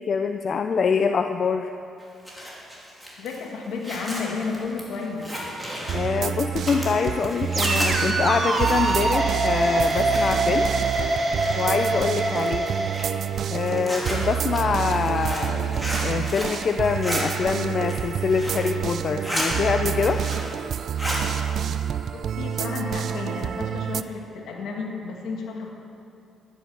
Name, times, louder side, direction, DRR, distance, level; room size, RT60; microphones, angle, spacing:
voice 1, 0.0-1.7 5.9-10.7 11.6-12.7 13.5-20.2 21.7-21.8, left 5 dB, 50° left, 7 dB, 0.4 m, -25 dB
Zipper (clothing), 2.0-10.6 10.8-11.8 12.3-16.6 16.8-17.2 17.7-18.7 19.0-19.5 19.8-20.6 20.8-21.2, equal, ahead, 3.4 m, -33 dB
voice 2, 3.2-5.3 22.1-25.7, left 4 dB, 80° left, 0 dB, 2.0 m, -32 dB
sound 1, 5.9-24.0, right 9 dB, 65° right, 0.3 m, -28 dB
sound 2, 6.7-13.1, right 2 dB, 40° right, 1.3 m, -24 dB
12.0 x 10.0 x 5.7 m, 2.7 s
cardioid pair, 90°, 0 cm